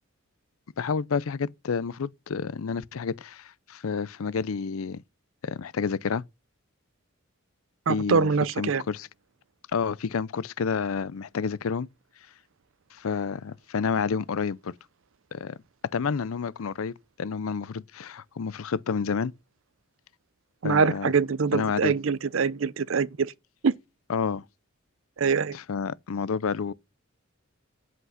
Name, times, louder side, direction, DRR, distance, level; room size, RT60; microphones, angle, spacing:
voice 1, 0.8-5.0 5.4-6.2 7.9-8.3 8.6-9.1 9.7-11.9 12.9-14.7 15.3-15.5 15.9-19.3 20.6-21.1 21.5-21.9 24.1-24.4 25.5-26.7, left 5 dB, 80° left, 0.5 m, -29 dB
voice 2, 7.9-8.8 20.6-23.3 23.6-23.7 25.2-25.6, right 5 dB, 70° right, 0.5 m, -24 dB
8.2 x 7.9 x 5.7 m
head